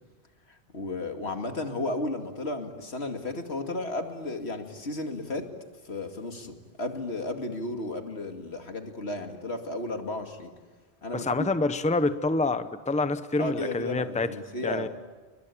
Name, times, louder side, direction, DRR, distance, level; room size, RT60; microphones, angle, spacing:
voice 1, 0.5-5.5 5.8-10.5 11.0-11.5 13.4-14.9, left 2 dB, 75° left, 5 dB, 2.6 m, -34 dB
voice 2, 11.1-14.3 14.6-14.9, left 2 dB, 5° left, 11 dB, 0.8 m, -27 dB
30.0 x 23.0 x 8.6 m, 1.3 s
omnidirectional pair, 1.1 m